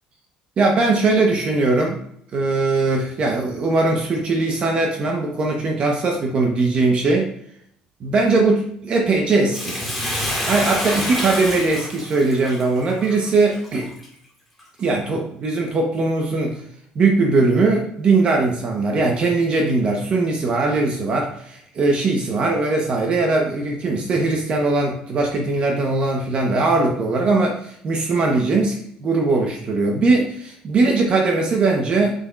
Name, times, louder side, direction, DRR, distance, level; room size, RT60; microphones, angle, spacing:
voice 1, 0.6-2.0 2.3-7.3 8.0-9.8 10.4-13.9 14.8-16.6 16.9-32.2, right 3 dB, 40° right, 1 dB, 1.1 m, -20 dB
Bathtub (filling or washing), 9.5-14.1 14.6-14.7, left 1 dB, ahead, 2.1 m, -27 dB
7.1 x 6.8 x 2.5 m, 0.69 s
cardioid pair, 135°, 3 cm